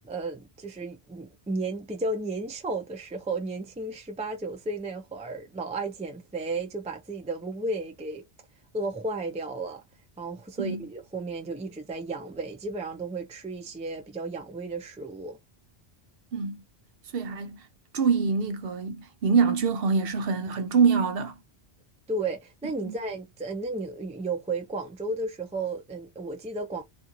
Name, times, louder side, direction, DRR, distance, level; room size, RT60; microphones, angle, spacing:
voice 1, 0.0-8.2 8.7-9.8 10.2-15.4 22.1-26.8, right 2 dB, 10° right, 0.3 m, -33 dB
voice 2, 16.3-16.6 17.1-17.6 17.9-21.3 22.8-22.9, right 5 dB, 65° right, 0.7 m, -25 dB
2.5 x 2.4 x 2.8 m
omnidirectional pair, 1.1 m